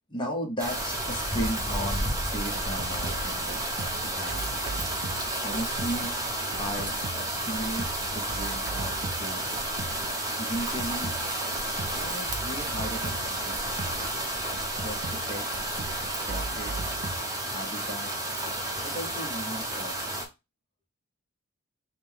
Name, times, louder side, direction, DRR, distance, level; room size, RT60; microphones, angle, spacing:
voice 1, 0.1-3.6 4.0-4.5 5.4-6.2 6.6-9.6 10.1-11.2 11.9-13.9 14.8-15.7 16.2-16.9 17.5-18.1 18.8-20.0, equal, 20° left, 2 dB, 0.9 m, -36 dB
sound 1, 0.6-20.3, right 1 dB, 15° right, 0.8 m, -31 dB
sound 2, 2.4-17.2, right 2 dB, 50° right, 0.5 m, -39 dB
5.1 x 2.2 x 3.4 m, 0.24 s
head